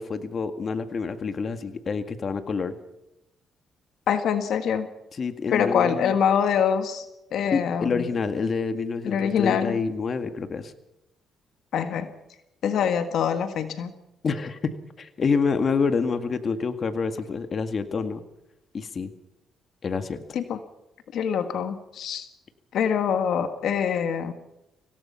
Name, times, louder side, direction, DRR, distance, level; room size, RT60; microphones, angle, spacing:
voice 1, 0.0-2.8 5.2-6.1 7.5-10.7 14.2-18.2 18.7-19.1 19.8-20.2, left 5 dB, 45° left, 9 dB, 2.0 m, -27 dB
voice 2, 4.1-4.9 5.5-7.0 7.3-8.1 9.0-9.8 11.7-12.1 12.6-13.9 20.3-20.6 21.1-22.3 22.7-24.3, left 7 dB, 75° left, 8 dB, 1.6 m, -24 dB
25.0 x 18.0 x 5.8 m, 0.89 s
cardioid pair, 90°, 0 cm